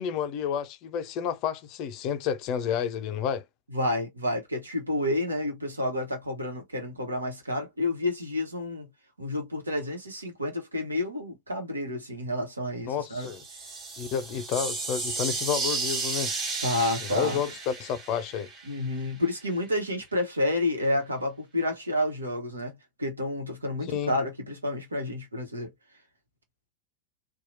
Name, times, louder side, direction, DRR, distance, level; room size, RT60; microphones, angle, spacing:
voice 1, 0.0-3.4 12.9-13.4 14.0-16.3 17.1-18.5 23.9-24.1, left 8 dB, 40° left, 0.4 m, -30 dB
voice 2, 3.7-8.9 9.2-13.3 16.6-17.4 18.6-25.7, left 1 dB, 80° right, 1.0 m, -30 dB
sound 1, 13.2-19.1, right 3 dB, 30° right, 1.2 m, -33 dB
2.8 x 2.2 x 2.5 m
figure-of-eight pair, 90°, 0 cm